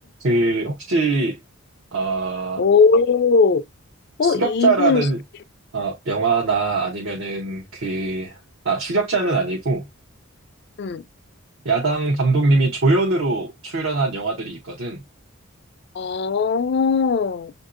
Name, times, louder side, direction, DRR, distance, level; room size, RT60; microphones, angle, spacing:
voice 1, 0.2-1.4 1.9-2.6 4.2-5.2 5.7-8.4 8.6-9.8 11.6-15.0, right 3 dB, 65° right, 0.8 m, -22 dB
voice 2, 2.6-3.6 4.2-5.1 10.8-11.0 15.9-17.5, left 5 dB, 50° left, 0.3 m, -19 dB
6.7 x 2.6 x 2.5 m
head